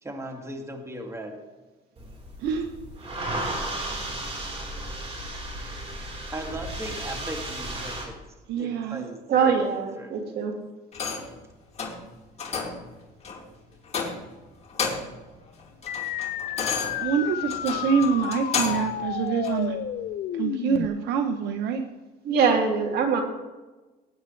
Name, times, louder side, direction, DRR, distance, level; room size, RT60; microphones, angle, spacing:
voice 1, 0.0-1.4 6.3-8.2 8.6-9.7 10.0-10.1, right 1 dB, 15° right, 2 dB, 2.3 m, -37 dB
sound 1, 2.0-8.0, right 1 dB, 35° right, 4.3 m, -34 dB
voice 2, 8.5-9.1 17.0-19.8 20.3-21.8, right 6 dB, 85° right, 6 dB, 1.0 m, -26 dB
voice 3, 9.3-10.5 22.2-23.2, right 6 dB, 70° right, 2 dB, 2.6 m, -23 dB
sound 2, 10.9-11.4 11.8-12.0 12.4-12.8 13.2-13.4 13.9-14.4 14.7-15.2 15.6-18.9 19.4-19.6, left 5 dB, 40° left, 2.6 m, -31 dB
sound 3, 15.9-20.9, left 11 dB, 60° left, 0.6 m, -31 dB
19.0 x 9.5 x 3.3 m, 1.2 s
cardioid pair, 110°, 17 cm